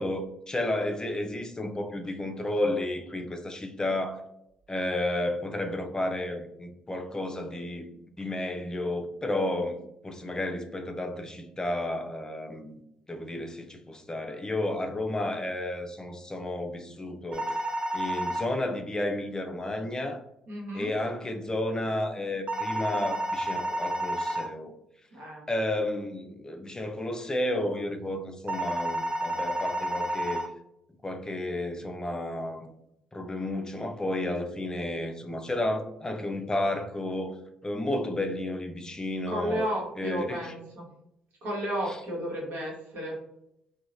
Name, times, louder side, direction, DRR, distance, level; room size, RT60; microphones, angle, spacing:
voice 1, 0.0-4.2 4.7-7.9 8.2-12.8 13.1-17.6 17.9-20.2 20.7-24.8 25.5-30.5 31.0-32.7 33.1-37.4 37.6-39.7 40.0-40.5 41.9-42.0, left 1 dB, 25° left, 4 dB, 0.4 m, -32 dB
sound 1, 17.3-18.5 22.5-24.5 28.5-30.5, right 1 dB, 40° right, 0.4 m, -30 dB
voice 2, 20.5-20.9 25.1-25.4 39.3-40.9 41.4-43.2, right 1 dB, 65° right, -3 dB, 1.1 m, -33 dB
2.9 x 2.2 x 2.5 m, 0.79 s
hypercardioid pair, 45°, 3 cm